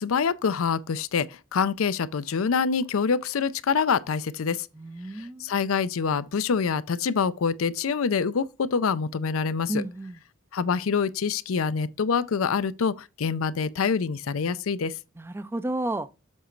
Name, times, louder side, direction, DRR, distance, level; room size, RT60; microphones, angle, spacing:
voice 1, 0.0-4.7 5.2-9.8 10.5-14.9, left 5 dB, 85° left, 0.5 m, -26 dB
voice 2, 4.7-5.5 9.7-10.2 15.2-16.1, right 1 dB, 10° right, 0.3 m, -31 dB
7.4 x 4.0 x 4.4 m
head